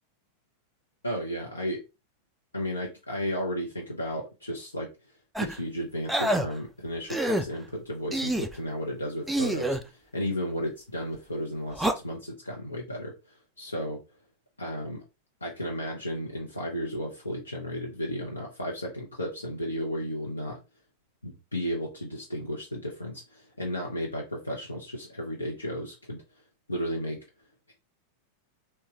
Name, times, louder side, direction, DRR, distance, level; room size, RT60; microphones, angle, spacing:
voice 1, 1.0-1.8 2.5-4.9 5.4-13.1 13.6-14.0 14.6-15.0 15.4-20.6 21.2-26.2 26.7-27.2, equal, 80° left, 0.6 m, -33 dB
sound 1, 5.4-5.6 6.1-6.5 7.1-7.4 8.1-8.5 9.3-9.8 11.7-11.9, right 1 dB, 5° right, 0.3 m, -27 dB
3.0 x 2.2 x 2.8 m
figure-of-eight pair, 90°, 0 cm